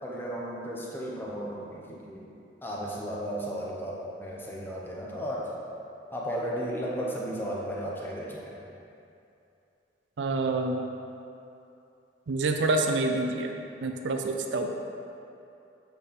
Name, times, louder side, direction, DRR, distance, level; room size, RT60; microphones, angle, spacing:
voice 1, 0.0-2.3 2.6-5.5 6.1-8.6, equal, 10° left, -4 dB, 0.7 m, -34 dB
voice 2, 10.2-10.8 12.3-13.5 13.8-14.7, right 2 dB, 85° right, 4 dB, 0.5 m, -27 dB
7.9 x 3.5 x 4.1 m, 2.7 s
head